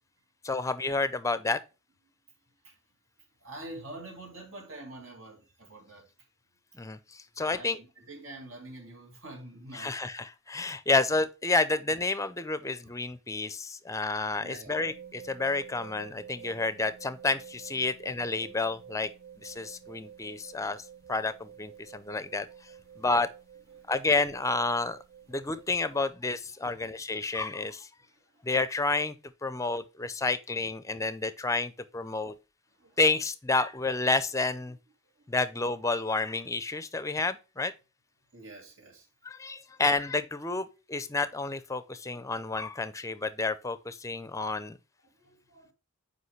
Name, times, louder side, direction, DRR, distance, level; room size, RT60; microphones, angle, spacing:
voice 1, 0.4-1.6 6.8-7.8 9.7-19.1 19.4-22.5 23.0-23.3 23.9-25.0 25.3-27.9 28.4-29.1 29.4-32.3 33.0-34.8 35.3-37.7 39.3-44.8, left 3 dB, 15° left, 0.5 m, -30 dB
voice 2, 3.4-6.3 7.4-10.0 12.8-12.9 14.3-14.8 20.4-20.5 22.8-23.1 23.7-23.9 25.3-25.6 25.9-26.0 26.6-26.9 27.2-27.5 28.0-28.5 29.4-29.6 32.7-33.0 35.0-35.3 38.3-39.1 39.7-39.8 41.0-41.1 45.0-45.7, right 2 dB, 70° right, 2.5 m, -47 dB
sound 1, 14.8-26.1, right 8 dB, 45° right, 0.6 m, -50 dB
8.1 x 5.0 x 3.1 m
head